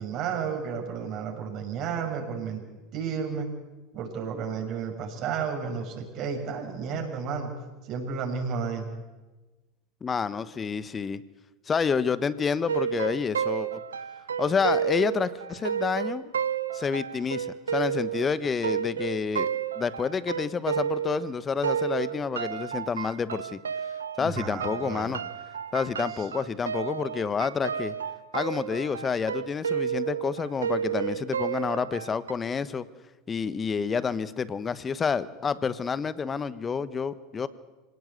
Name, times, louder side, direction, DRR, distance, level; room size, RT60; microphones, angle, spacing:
voice 1, 0.0-2.6 2.9-3.5 3.9-7.5 7.8-8.9 24.2-25.2 26.2-26.3, right 6 dB, 50° right, 2 dB, 6.3 m, -32 dB
voice 2, 10.0-11.2 11.7-13.8 14.4-16.3 16.7-17.5 17.7-19.5 19.7-23.6 24.2-25.2 25.7-27.9 28.3-32.9 33.3-37.5, left 6 dB, 25° left, 15 dB, 1.2 m, -29 dB
sound 1, 12.7-21.3 21.6-32.3, right 8 dB, 85° right, 0.8 m, -31 dB
26.0 x 18.0 x 8.2 m, 1.2 s
hypercardioid pair, 80°, 0 cm